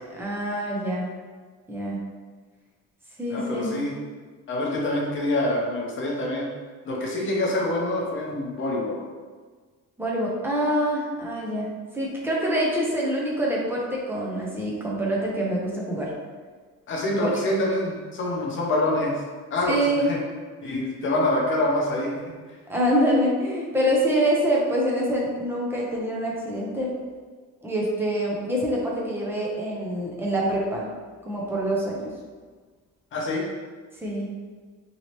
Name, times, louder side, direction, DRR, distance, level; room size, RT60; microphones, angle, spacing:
voice 1, 0.1-1.1 1.7-2.0 3.2-3.8 10.0-16.1 17.0-17.6 19.6-20.1 20.6-20.7 22.7-26.9 27.6-30.9 31.2-32.1 33.9-34.3, equal, 5° right, -4 dB, 0.4 m, -25 dB
voice 2, 3.3-3.9 4.5-6.5 6.8-9.0 16.9-19.2 19.5-20.2 20.6-22.2 33.1-33.4, left 1 dB, 35° left, -2 dB, 0.6 m, -26 dB
3.1 x 2.8 x 2.9 m, 1.5 s
cardioid pair, 175°, 33 cm